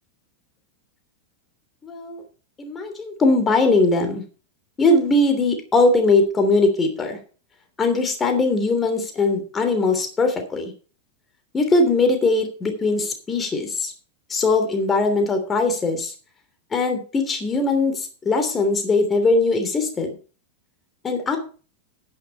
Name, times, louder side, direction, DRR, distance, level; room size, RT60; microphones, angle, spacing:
voice 1, 1.8-2.2 2.6-4.2 4.8-7.2 7.8-10.7 11.5-13.9 14.3-16.1 16.7-20.1 21.0-21.4, left 3 dB, 20° left, 5 dB, 3.1 m, -20 dB
10.0 x 9.9 x 4.6 m, 0.38 s
figure-of-eight pair, 90°, 0 cm